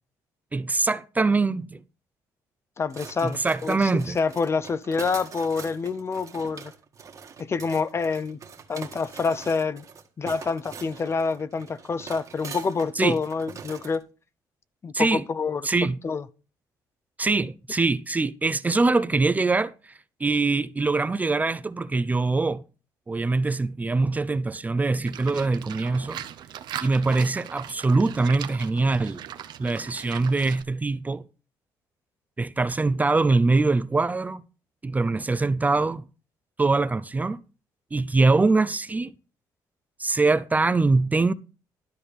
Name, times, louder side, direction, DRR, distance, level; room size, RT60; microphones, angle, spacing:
voice 1, 0.5-1.8 3.2-4.2 13.0-13.2 14.9-15.2 15.6-16.0 17.2-19.9 20.2-22.6 23.1-26.2 26.8-29.2 29.6-31.2 32.4-34.4 34.8-36.1 36.6-37.4 37.9-39.1 40.0-41.3, right 3 dB, 20° right, 0.5 m, -23 dB
voice 2, 2.8-6.7 7.5-8.4 8.7-9.8 10.2-14.0 14.8-15.6 16.0-16.2, left 4 dB, 35° left, 0.7 m, -27 dB
sound 1, 2.9-14.0, right 6 dB, 45° right, 1.6 m, -43 dB
Livestock farm animals working animals, 25.0-30.6, right 10 dB, 70° right, 0.8 m, -39 dB
12.5 x 4.2 x 6.8 m
cardioid pair, 95°, 8 cm